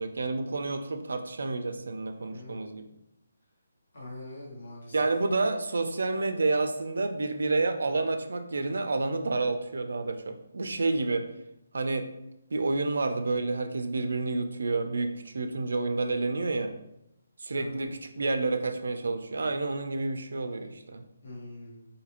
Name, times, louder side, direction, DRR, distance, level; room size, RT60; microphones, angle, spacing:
voice 1, 0.0-2.8 4.9-11.3 11.7-12.1 12.5-16.7 17.4-21.0, right 3 dB, 65° right, 6 dB, 0.3 m, -29 dB
voice 2, 2.1-2.6 3.9-5.0 17.5-17.9 21.2-21.9, left 2 dB, 40° left, -4 dB, 1.0 m, -43 dB
2.6 x 2.4 x 2.9 m, 0.82 s
hypercardioid pair, 180°, 0 cm